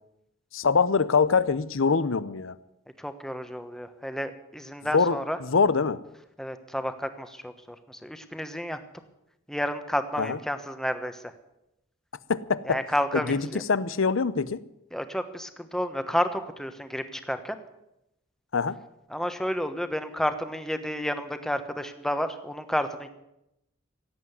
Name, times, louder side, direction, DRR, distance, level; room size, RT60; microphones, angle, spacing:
voice 1, 0.5-2.6 4.9-6.0 10.2-10.4 12.3-12.8 13.1-14.6 18.5-18.8, left 5 dB, 80° left, 0.7 m, -24 dB
voice 2, 3.0-5.4 6.4-8.8 9.5-11.3 12.6-13.6 14.9-17.6 19.1-23.1, equal, 5° left, 1.1 m, -31 dB
17.0 x 8.7 x 9.5 m
head